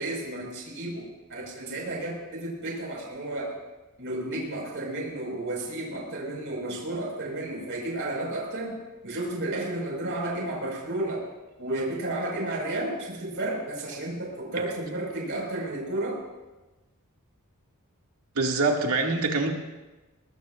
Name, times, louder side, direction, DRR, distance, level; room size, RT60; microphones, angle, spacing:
voice 1, 0.0-3.6 4.0-11.2 11.6-16.2, right 1 dB, 60° right, -3 dB, 5.1 m, -32 dB
voice 2, 18.4-19.5, right 3 dB, 80° right, 1 dB, 2.2 m, -24 dB
21.5 x 20.0 x 2.5 m, 1.1 s
head